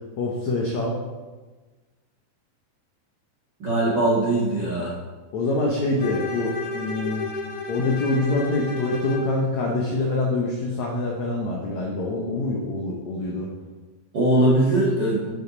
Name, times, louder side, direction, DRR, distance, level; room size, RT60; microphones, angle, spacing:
voice 1, 0.2-1.0 5.3-7.3 7.7-13.5, left 2 dB, 80° left, -1 dB, 1.6 m, -25 dB
voice 2, 3.6-4.9 14.1-15.2, right 1 dB, 85° right, -6 dB, 0.9 m, -21 dB
Bowed string instrument, 6.0-9.4, left 4 dB, 60° left, 2.0 m, -32 dB
12.0 x 5.5 x 4.0 m, 1.3 s
omnidirectional pair, 4.7 m